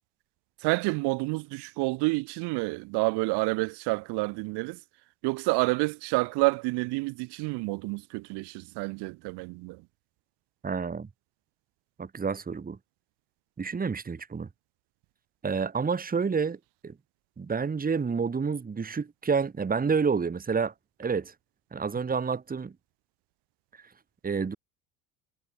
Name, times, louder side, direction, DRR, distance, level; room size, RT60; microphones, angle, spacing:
voice 1, 0.6-4.8 5.2-9.8, right 25 dB, 65° right, 2.0 m, -29 dB
voice 2, 10.6-11.1 12.0-12.8 13.6-14.5 15.4-16.9 17.4-20.7 21.0-21.3 21.7-22.7 24.2-24.6, right 5 dB, 20° right, 1.8 m, -29 dB
supercardioid pair, 85°, 43 cm